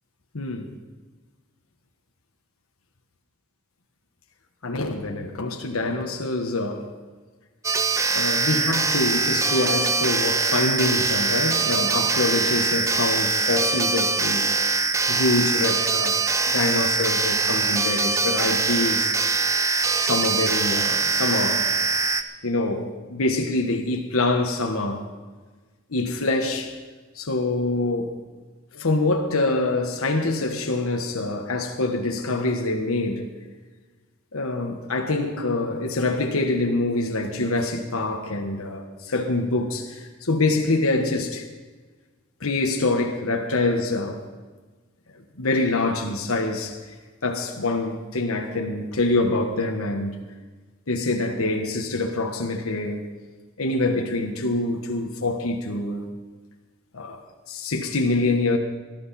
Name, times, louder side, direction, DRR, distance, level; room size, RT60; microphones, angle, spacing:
voice 1, 0.3-0.7 4.6-6.9 8.1-14.6 15.1-19.5 20.0-21.7 22.4-25.1 25.9-26.7 27.1-28.2 28.7-33.3 34.3-41.5 42.4-44.2 45.4-46.8 47.2-50.2 50.9-53.1 53.6-56.0 56.9-57.2 57.5-58.6, left 2 dB, 75° left, 1.3 m, -25 dB
sound 1, 7.6-22.2, right 4 dB, 15° right, 0.4 m, -23 dB
19.0 x 12.0 x 4.2 m
head